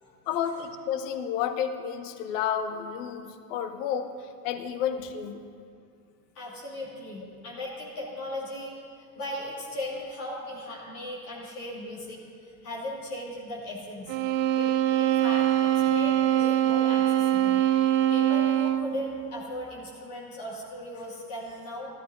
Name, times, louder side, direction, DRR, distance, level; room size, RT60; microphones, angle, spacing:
voice 1, 0.3-5.4, left 8 dB, 55° left, 9 dB, 0.8 m, -31 dB
voice 2, 6.3-14.2 14.6-17.7 18.1-21.9, left 1 dB, 70° left, -5 dB, 2.0 m, -37 dB
sound 1, 14.1-19.0, right 12 dB, 55° right, 0.7 m, -23 dB
13.0 x 12.0 x 2.6 m, 2.3 s
figure-of-eight pair, 70°, 47 cm